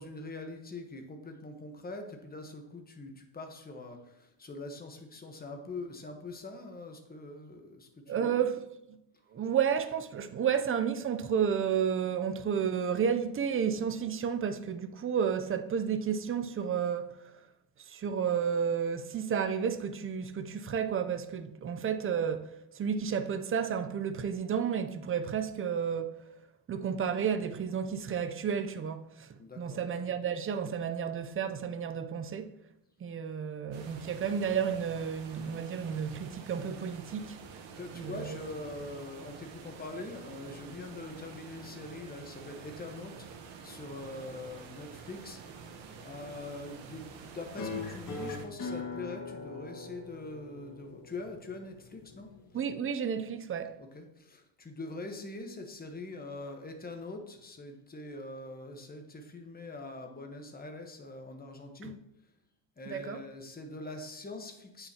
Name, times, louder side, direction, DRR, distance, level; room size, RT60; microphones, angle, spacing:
voice 1, 0.0-8.5 29.4-29.8 37.7-45.5 46.0-47.1 47.3-52.3 53.8-62.0 62.8-64.9, left 2 dB, 20° left, 1.2 m, -43 dB
voice 2, 8.1-8.6 9.3-17.1 17.9-22.5 22.7-26.2 26.7-32.5 33.0-37.4 37.9-38.4 52.5-53.8 61.8-61.9 62.9-63.2, right 7 dB, 30° right, 0.6 m, -31 dB
sound 1, 33.7-48.5, right 5 dB, 80° right, 1.2 m, -48 dB
sound 2, 47.6-52.6, left 3 dB, 45° left, 1.8 m, -41 dB
8.8 x 5.6 x 2.9 m
cardioid pair, 100°, 45 cm